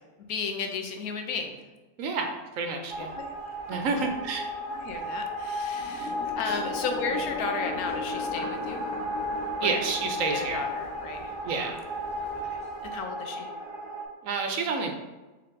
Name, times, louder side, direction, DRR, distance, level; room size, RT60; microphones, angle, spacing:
voice 1, 0.3-1.6 3.1-3.3 3.7-4.0 4.7-8.9 9.6-9.8 10.3-11.4 12.4-13.5, left 5 dB, 85° left, 4 dB, 1.1 m, -34 dB
voice 2, 2.0-3.1 3.7-4.5 6.5-6.6 9.6-10.6 11.4-11.8 14.2-14.9, right 4 dB, 70° right, 3 dB, 1.0 m, -29 dB
sound 1, 2.9-14.1, equal, 50° right, 0.3 m, -34 dB
sound 2, 5.7-12.3, left 5 dB, 65° left, 1.0 m, -39 dB
4.2 x 3.2 x 3.9 m, 1.2 s
omnidirectional pair, 1.5 m